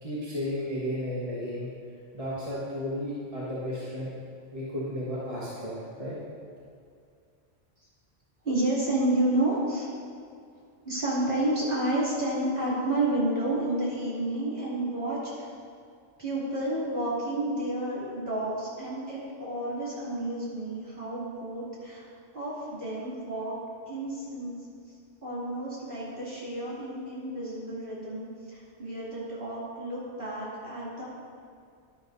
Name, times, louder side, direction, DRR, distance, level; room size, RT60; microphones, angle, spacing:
voice 1, 0.0-1.7 2.1-4.1 4.5-5.7 6.0-6.1, equal, 30° right, -8 dB, 1.4 m, -33 dB
voice 2, 8.4-9.9 10.8-15.5 16.2-22.0 22.3-23.6 23.8-24.5 25.2-31.1, right 1 dB, 45° right, -8 dB, 3.0 m, -30 dB
11.0 x 11.0 x 2.7 m, 2.2 s
omnidirectional pair, 1.3 m